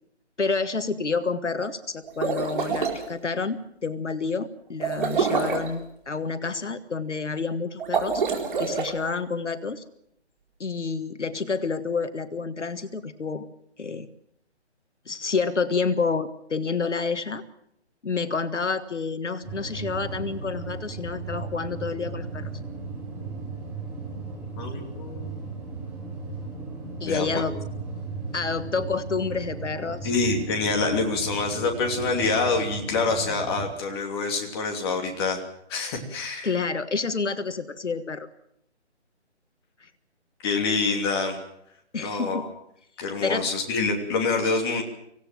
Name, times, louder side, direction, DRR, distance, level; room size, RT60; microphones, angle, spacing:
voice 1, 0.4-8.2 8.6-9.8 10.6-13.5 13.8-14.1 15.1-17.4 18.0-22.4 27.0-27.5 28.3-30.1 36.4-38.3 39.8-39.9 41.9-42.5 43.2-43.5, left 4 dB, 80° left, 11 dB, 1.6 m, -29 dB
sound 1, 2.0-3.0 4.8-5.7 7.8-8.9, right 5 dB, 45° right, 4.2 m, -26 dB
sound 2, 19.4-33.7, right 3 dB, 5° right, 5.7 m, -36 dB
voice 2, 24.6-25.4 27.0-27.2 30.0-35.4 35.7-36.5 40.4-41.4 42.0-42.5 43.0-44.8, left 4 dB, 20° left, 3 dB, 2.9 m, -26 dB
25.0 x 17.5 x 7.6 m, 0.75 s
figure-of-eight pair, 155°, 35 cm